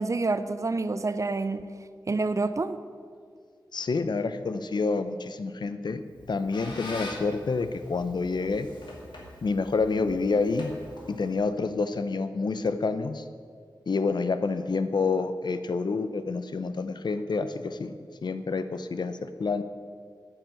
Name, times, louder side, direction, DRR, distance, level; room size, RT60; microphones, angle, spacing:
voice 1, 0.0-1.6 2.1-2.8, right 3 dB, 40° right, 12 dB, 0.6 m, -27 dB
voice 2, 3.7-6.0 6.3-8.7 9.4-10.7 11.1-13.3 13.9-19.6, left 4 dB, 70° left, 11 dB, 0.7 m, -28 dB
Squeak, 6.0-11.5, left 1 dB, 90° left, 2.4 m, -44 dB
9.8 x 9.0 x 7.7 m, 2.1 s
wide cardioid pair, 80°, 8 cm